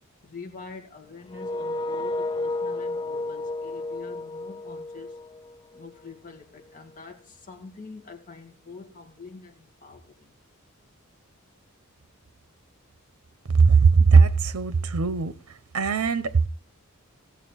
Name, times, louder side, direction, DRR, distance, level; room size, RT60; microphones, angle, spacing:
voice 1, 0.2-5.2 5.7-10.3, left 4 dB, 40° left, 2.2 m, -45 dB
sound 1, 1.3-6.1, left 2 dB, 20° left, 0.4 m, -32 dB
voice 2, 13.5-15.3 15.7-16.5, right 5 dB, 80° right, 0.7 m, -18 dB
17.0 x 7.0 x 4.6 m
head